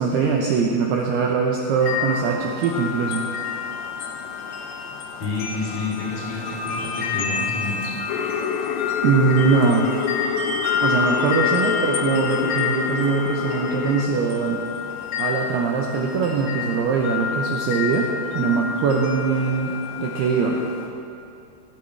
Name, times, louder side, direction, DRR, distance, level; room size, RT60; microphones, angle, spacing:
voice 1, 0.0-3.2 9.0-9.9 10.8-14.6 15.2-18.1 18.3-20.6, right 5 dB, 75° right, -1 dB, 2.5 m, -22 dB
sound 1, 1.8-20.9, left 6 dB, 65° left, 2.8 m, -29 dB
voice 2, 5.2-7.9, left 3 dB, 40° left, -9 dB, 4.4 m, -29 dB
sound 2, 8.1-14.1, left 8 dB, 85° left, 2.5 m, -28 dB
21.0 x 13.5 x 3.3 m, 2.7 s
omnidirectional pair, 5.6 m